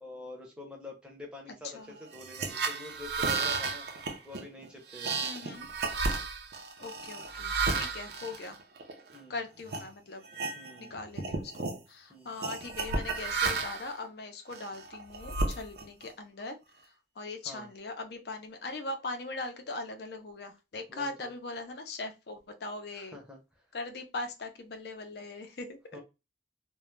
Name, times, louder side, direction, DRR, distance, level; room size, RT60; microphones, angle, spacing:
voice 1, 0.0-3.9 4.2-5.2 9.1-9.4 10.6-10.9 12.1-12.3 17.5-17.7 20.9-21.3 22.9-23.4 25.9-26.0, left 2 dB, 5° right, -1 dB, 0.6 m, -46 dB
sound 1, 2.1-9.2 9.7-9.9 10.2-10.9 11.1-11.8 12.4-13.9 14.5-16.1, right 4 dB, 60° right, 0.4 m, -33 dB
voice 2, 5.2-5.7 6.8-8.6 9.3-10.2 10.8-16.6 17.2-23.2 23.7-26.0, left 3 dB, 60° left, 6 dB, 0.5 m, -40 dB
2.2 x 2.0 x 3.0 m, 0.26 s
head